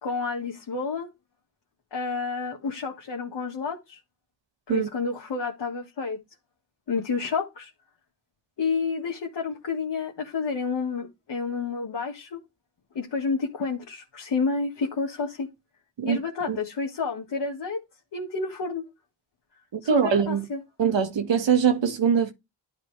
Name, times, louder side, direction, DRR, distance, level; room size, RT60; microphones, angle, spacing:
voice 1, 0.0-1.1 1.9-4.0 4.7-6.2 6.9-7.7 8.6-12.4 13.0-15.5 16.1-17.8 18.1-18.8 19.8-20.6, left 4 dB, 70° left, 1.8 m, -30 dB
voice 2, 19.9-20.4 20.8-22.3, right 7 dB, 90° right, 1.7 m, -22 dB
11.5 x 4.1 x 3.4 m
cardioid pair, 70°, 43 cm